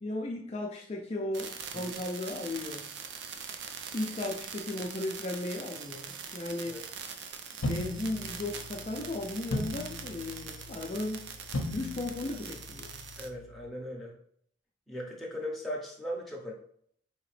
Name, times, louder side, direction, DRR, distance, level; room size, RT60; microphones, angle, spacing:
voice 1, 0.0-2.9 3.9-6.8 7.6-11.3 11.6-12.9, left 2 dB, 35° left, -1 dB, 0.4 m, -36 dB
sound 1, 1.3-13.3, right 6 dB, 60° right, 0.4 m, -43 dB
sound 2, 7.6-13.7, left 2 dB, 80° left, 0.6 m, -39 dB
voice 2, 13.2-14.2 14.9-16.5, equal, ahead, -4 dB, 0.8 m, -38 dB
4.9 x 2.8 x 3.2 m, 0.63 s
head